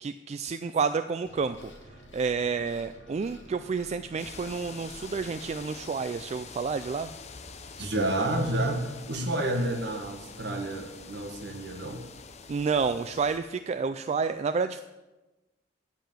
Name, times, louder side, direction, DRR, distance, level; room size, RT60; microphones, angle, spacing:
voice 1, 0.0-1.7 2.1-7.1 12.5-14.8, right 5 dB, 35° right, 10 dB, 0.3 m, -30 dB
sound 1, 1.2-5.6, equal, 90° left, 2.4 m, -51 dB
sound 2, 4.2-13.4, left 4 dB, 35° left, 0.7 m, -46 dB
voice 2, 7.8-12.0, right 1 dB, 65° right, 3 dB, 1.7 m, -30 dB
10.5 x 5.6 x 7.3 m, 1.1 s
head